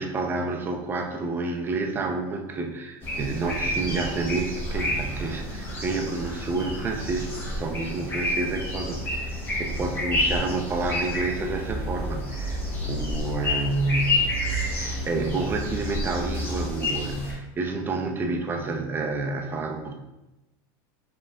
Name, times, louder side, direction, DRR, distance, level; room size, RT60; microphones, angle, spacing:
voice 1, 0.0-14.3 14.6-19.9, right 3 dB, 15° right, 2 dB, 0.5 m, -29 dB
sound 1, 3.0-17.3, left 1 dB, 20° left, 1.0 m, -29 dB
5.1 x 3.3 x 2.3 m, 0.95 s
supercardioid pair, 150°, 12 cm